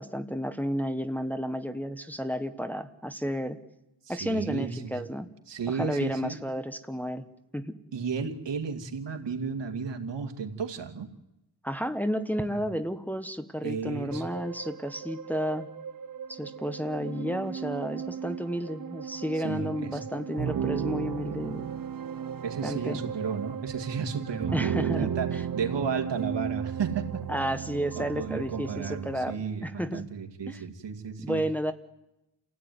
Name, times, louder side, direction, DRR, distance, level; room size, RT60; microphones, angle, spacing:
voice 1, 0.0-3.6 4.1-5.3 5.7-7.2 7.5-7.7 11.6-15.7 16.3-21.7 22.6-23.0 24.5-25.1 27.3-29.4 29.6-30.1 30.5-30.6 31.2-31.7, equal, 5° left, 8 dB, 1.1 m, -32 dB
voice 2, 4.0-5.0 5.5-6.4 7.9-11.1 12.5-12.6 13.6-14.2 19.3-20.0 22.4-27.4 28.0-31.4, right 6 dB, 80° right, 6 dB, 2.5 m, -33 dB
sound 1, 14.1-29.4, right 8 dB, 55° right, 0.9 m, -35 dB
29.0 x 16.5 x 9.5 m, 0.92 s
wide cardioid pair, 115°, 42 cm